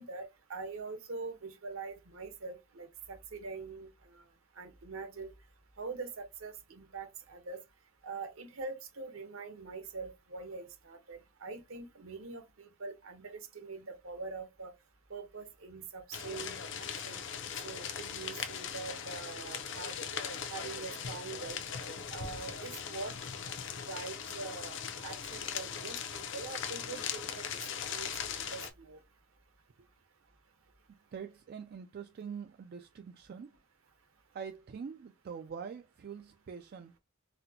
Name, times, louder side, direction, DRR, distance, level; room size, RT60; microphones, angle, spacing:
voice 1, 0.0-4.2 4.6-5.3 5.8-7.6 8.0-14.7 15.1-17.2 17.6-20.0 20.5-21.6 22.1-23.2 23.8-27.6 27.9-29.0, right 4 dB, 65° right, 0.9 m, -44 dB
sound 1, 16.1-28.7, left 7 dB, 60° left, 0.6 m, -39 dB
voice 2, 30.9-33.6 34.3-37.0, right 6 dB, 45° right, 0.3 m, -44 dB
4.1 x 2.1 x 2.7 m
head